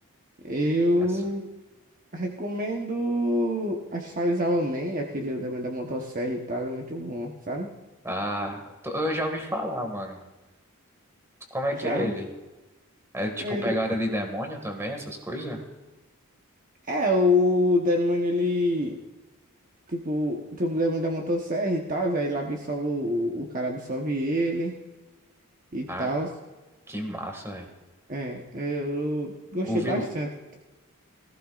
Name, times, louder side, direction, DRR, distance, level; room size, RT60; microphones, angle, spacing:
voice 1, 0.4-1.5 2.1-7.7 11.8-12.1 13.4-13.8 16.9-19.0 19.9-24.8 25.7-26.3 28.1-30.5, equal, 40° right, 1 dB, 1.0 m, -27 dB
voice 2, 8.0-10.2 11.5-12.3 13.1-15.6 25.9-26.1 26.9-27.7 29.6-30.1, equal, 10° right, 3 dB, 1.9 m, -30 dB
18.0 x 15.0 x 2.5 m, 1.1 s
head